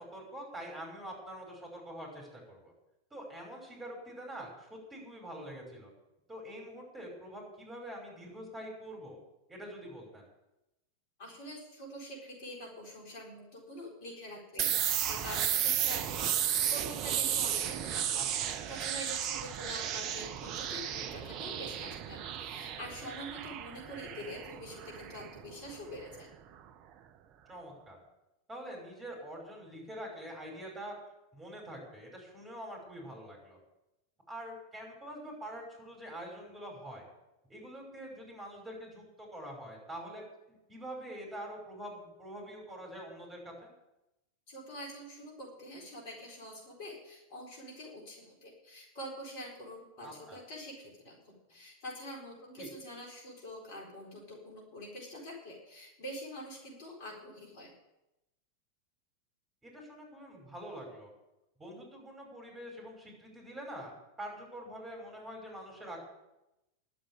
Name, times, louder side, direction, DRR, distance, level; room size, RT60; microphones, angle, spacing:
voice 1, 0.0-2.7 3.1-5.9 6.3-9.2 9.5-10.3 18.1-18.5 27.5-28.0 28.5-30.9 31.3-33.6 34.3-37.1 37.5-43.7 50.0-50.4 52.6-52.7 59.6-61.1 61.6-66.0, equal, 15° right, -1 dB, 5.6 m, -45 dB
voice 2, 11.2-26.3 44.5-57.7, equal, 50° left, -2 dB, 4.3 m, -45 dB
sound 1, 14.6-26.2, right 9 dB, 40° right, 0.7 m, -34 dB
11.5 x 7.9 x 9.9 m, 0.93 s
figure-of-eight pair, 90°, 0 cm